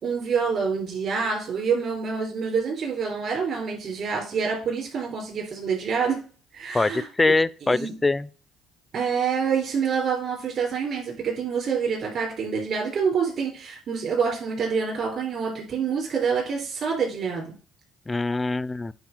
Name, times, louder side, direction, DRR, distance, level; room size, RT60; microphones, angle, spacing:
voice 1, 0.0-6.2 6.5-7.1 7.7-7.9 8.9-17.6, right 6 dB, 60° right, 3.8 m, -27 dB
voice 2, 6.7-8.3 18.1-18.9, left 3 dB, 20° left, 0.5 m, -23 dB
9.2 x 3.5 x 6.0 m
supercardioid pair, 70°, 0 cm